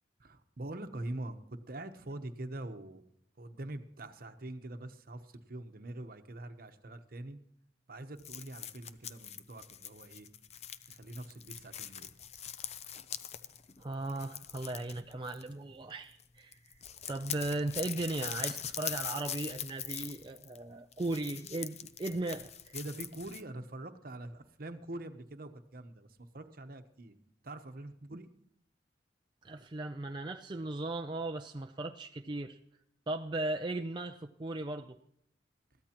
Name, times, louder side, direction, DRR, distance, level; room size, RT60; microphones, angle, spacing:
voice 1, 0.2-3.0 3.4-7.4 7.9-10.3 10.9-12.1 22.7-27.2 27.4-28.3, right 1 dB, 55° right, 8 dB, 1.0 m, -44 dB
sound 1, 8.2-15.8 16.1-16.3 16.5-23.4, left 9 dB, 35° left, 0.6 m, -43 dB
voice 2, 13.8-16.8 17.1-22.7 29.4-32.6 33.1-35.0, right 2 dB, 25° right, 4 dB, 0.5 m, -37 dB
22.0 x 14.0 x 3.0 m, 0.75 s
head